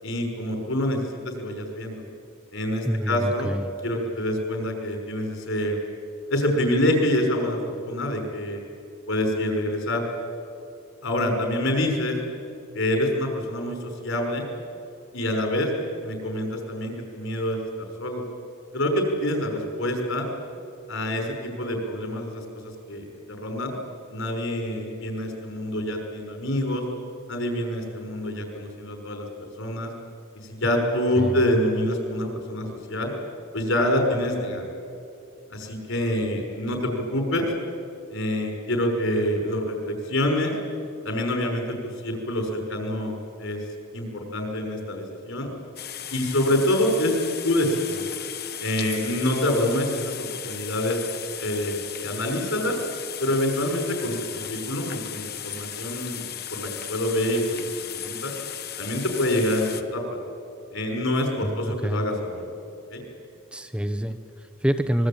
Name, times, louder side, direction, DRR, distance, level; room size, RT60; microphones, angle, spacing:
voice 1, 0.0-2.0 2.5-3.5 3.8-5.8 6.3-8.6 9.1-10.0 11.0-12.2 12.7-14.5 15.1-15.7 16.0-18.2 18.7-20.3 20.9-23.8 24.1-26.8 27.3-29.9 30.4-33.1 33.5-34.7 35.5-37.5 38.1-40.5 41.0-43.6 43.9-45.5 46.1-47.2 47.4-48.0 48.6-51.0 51.4-52.8 53.2-58.3 58.8-60.2 60.7-62.4 62.9-63.0, left 1 dB, 65° left, 3 dB, 5.8 m, -26 dB
voice 2, 2.8-3.7 31.1-31.4 61.4-62.1 63.5-65.1, equal, 5° right, 8 dB, 0.8 m, -27 dB
sound 1, 45.8-59.8, left 10 dB, 50° left, 1.4 m, -36 dB
25.5 x 22.0 x 9.0 m, 2.7 s
head